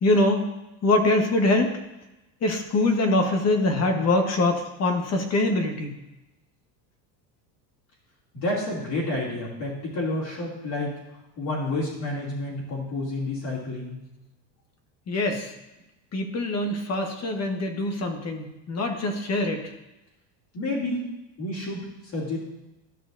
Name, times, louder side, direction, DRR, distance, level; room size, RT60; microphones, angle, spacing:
voice 1, 0.0-0.4 0.8-1.7 2.4-5.9 15.1-15.5 16.1-19.7, left 2 dB, 30° left, 4 dB, 1.2 m, -23 dB
voice 2, 8.3-11.0 11.4-14.0 20.5-21.1 21.4-22.4, left 2 dB, 50° left, -8 dB, 2.8 m, -29 dB
13.0 x 6.0 x 2.6 m, 0.97 s
supercardioid pair, 125°, 49 cm